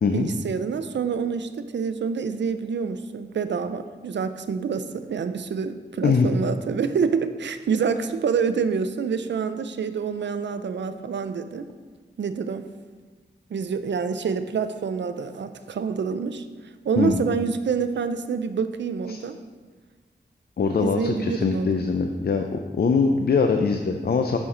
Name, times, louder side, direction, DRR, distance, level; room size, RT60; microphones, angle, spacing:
voice 1, 0.1-11.7 12.2-12.7 13.5-16.4 16.8-19.4 20.8-21.7, right 6 dB, 80° right, 10 dB, 0.5 m, -27 dB
voice 2, 20.6-24.4, left 5 dB, 60° left, 5 dB, 0.5 m, -22 dB
7.0 x 6.2 x 3.8 m, 1.4 s
wide cardioid pair, 85°, 18 cm